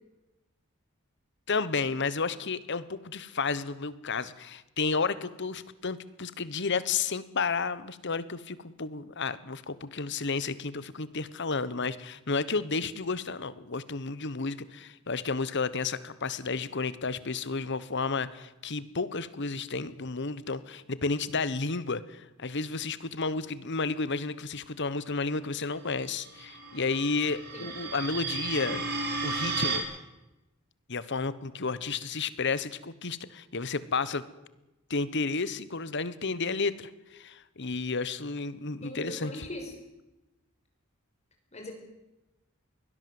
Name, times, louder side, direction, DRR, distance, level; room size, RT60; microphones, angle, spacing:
voice 1, 1.5-28.9 29.2-29.8 30.9-34.2 34.9-39.5, left 4 dB, 55° left, 16 dB, 1.3 m, -32 dB
sound 1, 26.2-29.8, right 4 dB, 50° right, 4.3 m, -33 dB
voice 2, 38.8-39.7 41.5-41.7, left 1 dB, 30° left, 2 dB, 5.6 m, -40 dB
22.5 x 17.5 x 7.9 m, 0.99 s
head